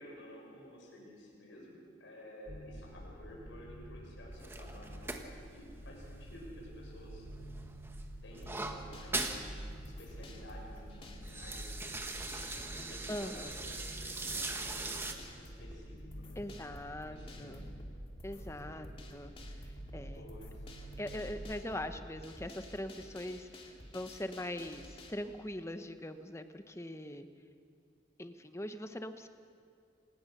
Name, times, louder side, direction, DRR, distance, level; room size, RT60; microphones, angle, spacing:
voice 1, 0.0-5.2 5.5-7.3 8.2-9.6 9.8-16.4 17.0-17.7 18.3-18.8 20.1-20.6, left 1 dB, 85° left, -3 dB, 6.2 m, -53 dB
sound 1, 2.5-21.4, right 1 dB, 60° left, 5.0 m, -49 dB
sound 2, 4.4-6.9 7.3-9.4 9.8-9.9 10.2-10.6 11.0-15.1, right 3 dB, 15° right, 1.3 m, -41 dB
sound 3, 8.4-25.1, left 1 dB, 30° left, 2.3 m, -51 dB
voice 2, 13.1-13.5 16.4-17.6 18.2-19.3 19.6-20.2 21.0-27.3 28.2-29.3, left 1 dB, 15° left, 9 dB, 0.8 m, -42 dB
28.0 x 17.5 x 6.6 m, 2.4 s
head